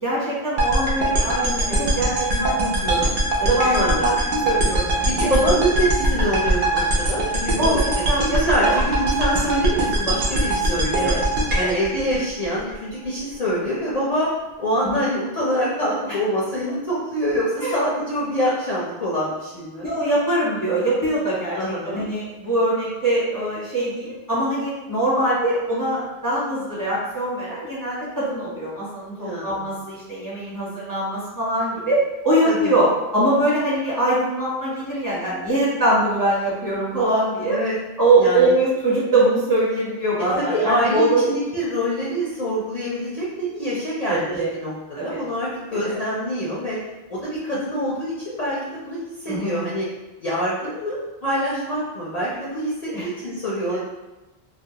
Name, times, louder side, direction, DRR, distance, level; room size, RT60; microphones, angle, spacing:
voice 1, 0.0-3.0 3.4-4.2 4.4-5.3 7.6-8.7 10.9-11.2 11.6-11.8 14.8-15.0 17.6-17.8 19.8-37.6 38.0-41.2 44.1-44.5 44.9-45.2 45.8-46.0 49.3-49.6 52.9-53.1, right 1 dB, 20° right, -9 dB, 0.8 m, -22 dB
sound 1, 0.6-12.8, right 1 dB, 60° right, 0.7 m, -22 dB
voice 2, 3.7-4.1 5.2-11.1 11.6-14.3 14.6-19.9 21.5-22.0 29.1-29.6 32.5-32.7 37.5-37.8 38.2-38.5 40.4-44.7 45.0-46.8 47.1-48.6 48.8-49.9 50.2-52.7 53.0-53.8, equal, 50° left, -7 dB, 0.5 m, -25 dB
2.4 x 2.1 x 2.7 m, 1.1 s
omnidirectional pair, 1.1 m